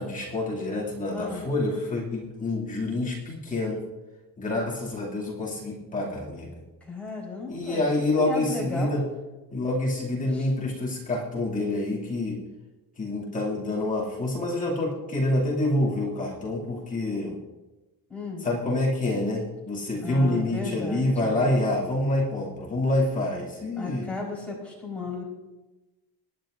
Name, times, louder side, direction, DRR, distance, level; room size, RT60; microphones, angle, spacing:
voice 1, 0.0-3.8 4.4-6.6 7.5-9.0 9.5-12.4 13.0-17.4 18.4-24.1, left 1 dB, 20° left, -5 dB, 2.5 m, -27 dB
voice 2, 1.1-1.4 6.9-7.8 8.2-9.0 10.3-10.5 18.1-18.5 20.0-21.6 23.7-25.2, left 3 dB, 5° left, -5 dB, 4.2 m, -34 dB
24.0 x 10.5 x 2.6 m, 1.1 s
cardioid pair, 170°, 37 cm